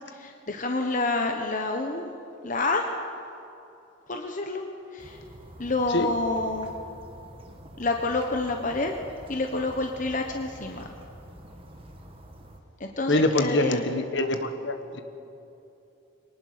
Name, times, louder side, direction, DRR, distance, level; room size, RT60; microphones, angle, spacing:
voice 1, 0.1-2.1 2.4-2.9 4.1-4.6 4.9-5.2 5.6-6.7 7.8-8.9 9.3-10.9 12.8-13.8, left 2 dB, 40° left, 4 dB, 1.1 m, -28 dB
sound 1, 5.0-12.6, right 1 dB, 25° right, 1.8 m, -47 dB
voice 2, 13.1-15.0, left 1 dB, 55° left, 8 dB, 1.5 m, -25 dB
23.5 x 19.0 x 6.7 m, 2.8 s
head